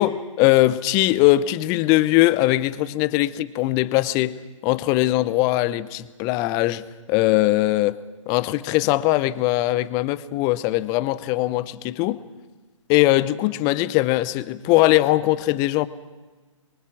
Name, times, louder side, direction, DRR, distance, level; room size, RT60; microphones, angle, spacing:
voice 1, 0.0-4.4 4.6-6.8 7.1-8.0 8.3-12.2 12.9-15.9, left 17 dB, 20° left, 16 dB, 0.7 m, -20 dB
26.0 x 23.0 x 6.2 m, 1.3 s
figure-of-eight pair, 135°, 17 cm